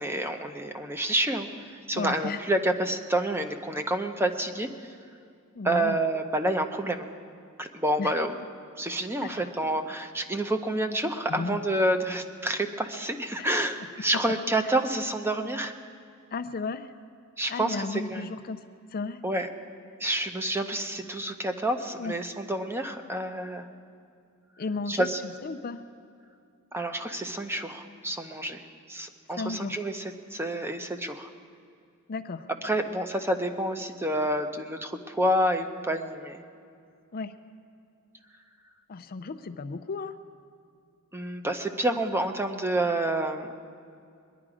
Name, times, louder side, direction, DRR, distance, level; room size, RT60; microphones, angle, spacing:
voice 1, 0.0-4.9 5.6-7.1 7.6-8.3 8.8-15.7 17.4-18.3 19.2-19.5 20.0-23.7 24.9-25.2 26.7-28.6 28.9-31.3 32.6-36.4 41.1-43.5, right 1 dB, 10° right, 6 dB, 0.7 m, -28 dB
voice 2, 1.9-2.4 5.5-6.0 8.0-8.1 9.2-9.4 11.3-11.6 13.4-13.5 16.3-16.9 17.5-18.6 18.9-19.2 22.0-22.1 24.6-25.8 29.3-29.8 32.1-32.5 37.1-37.3 38.9-40.2, left 4 dB, 45° left, 9 dB, 0.5 m, -34 dB
22.0 x 11.0 x 4.9 m, 2.4 s
head